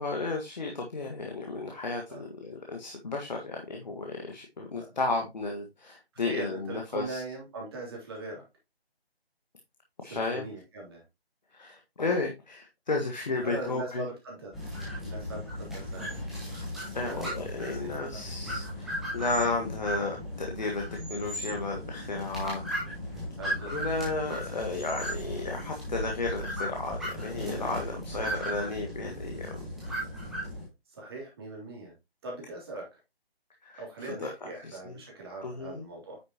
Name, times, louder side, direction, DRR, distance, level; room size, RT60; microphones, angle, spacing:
voice 1, 0.0-7.2 10.0-10.5 11.5-14.1 16.9-20.8 21.1-22.6 23.7-29.7 33.6-35.0 35.4-35.8, left 3 dB, 45° left, 1 dB, 1.6 m, -33 dB
voice 2, 6.1-8.4 10.0-11.0 13.4-14.6 15.0-16.2 17.0-17.3 17.6-18.2 23.4-23.7 30.9-31.9 32.2-32.9 33.8-36.2, right 2 dB, 25° right, -1 dB, 3.0 m, -40 dB
sound 1, 14.5-30.6, equal, ahead, 1.1 m, -36 dB
9.5 x 6.4 x 2.9 m, 0.23 s
figure-of-eight pair, 160°, 31 cm